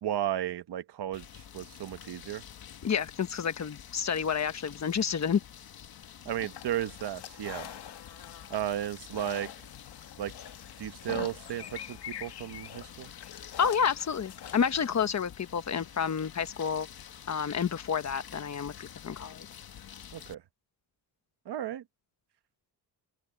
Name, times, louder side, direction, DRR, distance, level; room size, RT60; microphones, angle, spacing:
voice 1, 0.0-2.4 6.2-7.7 8.5-9.5 10.2-10.3 10.8-13.1 20.1-20.4 21.4-21.8, right 11 dB, 85° right, 1.2 m, -34 dB
sound 1, 1.1-20.3, left 9 dB, 65° left, 1.6 m, -49 dB
voice 2, 2.8-5.4 13.6-16.9 17.3-19.5, left 7 dB, 45° left, 1.1 m, -29 dB
sound 2, 6.4-15.1, left 10 dB, 80° left, 2.1 m, -45 dB
open air
wide cardioid pair, 150°, 39 cm